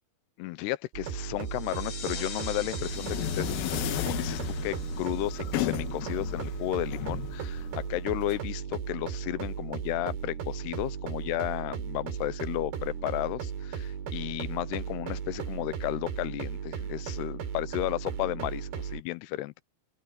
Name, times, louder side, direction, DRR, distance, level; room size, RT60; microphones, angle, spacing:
voice 1, 0.4-19.5, left 17 dB, 90° left, 2.9 m, -33 dB
sound 1, 0.9-19.0, right 7 dB, 80° right, 4.9 m, -36 dB
sound 2, 1.4-6.7, left 7 dB, 55° left, 1.4 m, -45 dB
sound 3, 2.6-8.4, left 13 dB, 75° left, 2.8 m, -35 dB
open air
omnidirectional pair, 4.6 m